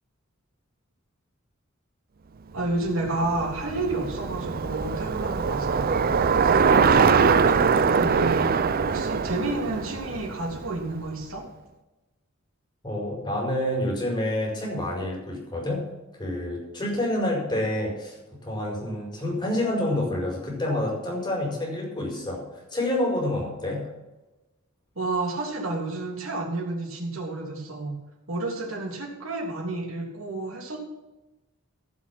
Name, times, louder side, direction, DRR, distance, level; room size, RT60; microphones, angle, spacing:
voice 1, 2.5-8.5 8.9-11.4 24.9-27.9 28.3-30.8, right 2 dB, 80° right, -2 dB, 3.2 m, -31 dB
Bicycle, 2.7-11.1, right 5 dB, 45° right, 0.5 m, -23 dB
voice 2, 12.8-15.8 16.2-23.9, left 1 dB, 25° left, -2 dB, 4.9 m, -28 dB
15.0 x 6.2 x 6.1 m, 1.0 s
head